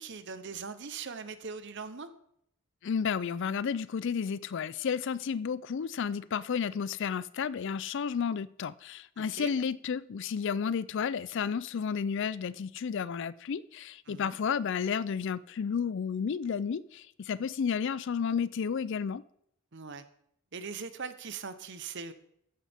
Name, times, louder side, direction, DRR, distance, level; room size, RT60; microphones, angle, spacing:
voice 1, 0.0-2.1 9.2-9.5 14.1-14.4 19.7-20.1 20.5-22.1, right 5 dB, 60° right, 0.9 m, -41 dB
voice 2, 2.8-19.2, left 6 dB, 60° left, 0.4 m, -32 dB
14.5 x 9.5 x 3.6 m
head